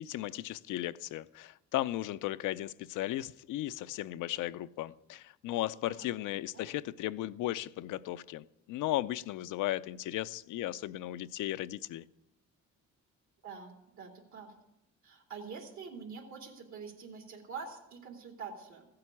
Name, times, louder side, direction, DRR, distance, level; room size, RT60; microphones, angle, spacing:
voice 1, 0.0-12.1, left 14 dB, 85° left, 0.6 m, -36 dB
voice 2, 13.4-14.5 15.0-18.9, right 5 dB, 75° right, 3.1 m, -45 dB
15.5 x 7.8 x 8.4 m
cardioid pair, 90°, 30 cm